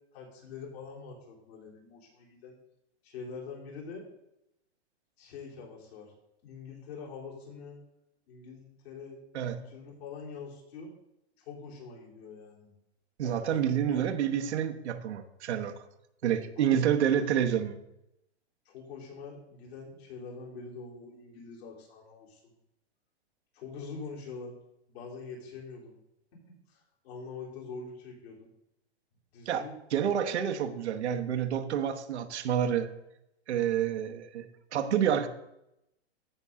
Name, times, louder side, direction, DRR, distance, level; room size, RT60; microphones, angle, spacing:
voice 1, 0.1-2.6 3.0-4.1 5.2-6.1 6.4-7.8 8.3-9.2 9.5-10.9 11.4-12.7 13.2-14.0 16.6-16.8 17.1-17.3 18.7-22.5 23.5-24.6 24.9-26.0 26.5-28.5 29.3-29.7, left 5 dB, 65° left, -3 dB, 3.9 m, -44 dB
voice 2, 13.2-15.7 16.2-17.8 29.5-29.6 29.9-32.9 33.5-34.5 34.7-35.3, right 9 dB, 80° right, 6 dB, 1.1 m, -28 dB
14.5 x 5.5 x 3.7 m, 0.84 s
hypercardioid pair, 145°, 33 cm